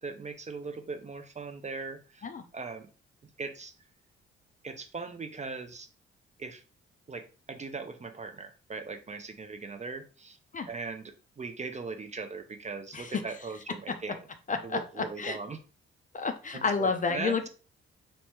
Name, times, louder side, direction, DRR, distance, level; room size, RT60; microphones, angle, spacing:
voice 1, 0.0-2.3 2.5-2.9 3.4-3.7 4.6-5.9 6.4-6.6 7.1-10.4 10.7-14.2 14.6-15.6 16.5-17.4, right 4 dB, 25° right, 8 dB, 0.6 m, -39 dB
voice 2, 14.5-15.4 16.1-17.5, left 4 dB, 25° left, 7 dB, 0.5 m, -30 dB
4.2 x 2.1 x 4.3 m, 0.35 s
figure-of-eight pair, 40°, 29 cm